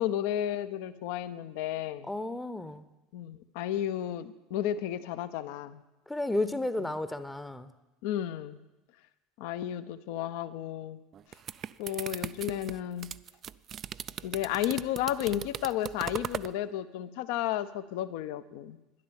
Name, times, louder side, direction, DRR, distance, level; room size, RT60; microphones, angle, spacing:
voice 1, 0.0-2.1 3.1-5.8 8.0-8.6 9.4-11.0 11.8-13.1 14.2-18.8, left 11 dB, 65° left, 13 dB, 0.7 m, -33 dB
voice 2, 2.1-2.8 6.1-7.7, left 2 dB, 10° left, 12 dB, 0.8 m, -32 dB
sound 1, 11.1-16.5, right 9 dB, 40° right, 0.4 m, -39 dB
11.5 x 10.5 x 7.1 m, 1.0 s
hypercardioid pair, 75°, 0 cm